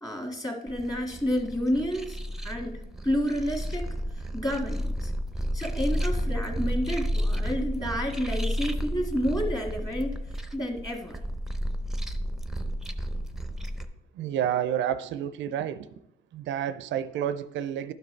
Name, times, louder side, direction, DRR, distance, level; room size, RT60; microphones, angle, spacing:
voice 1, 0.0-2.8 3.0-5.1 5.5-10.1 10.5-11.2, equal, 20° left, 2 dB, 1.6 m, -30 dB
sound 1, 0.7-13.8, equal, ahead, 0.6 m, -31 dB
voice 2, 14.2-15.9 16.3-17.9, right 10 dB, 70° right, 13 dB, 0.4 m, -29 dB
12.0 x 5.3 x 3.2 m, 0.82 s
cardioid pair, 90°, 20 cm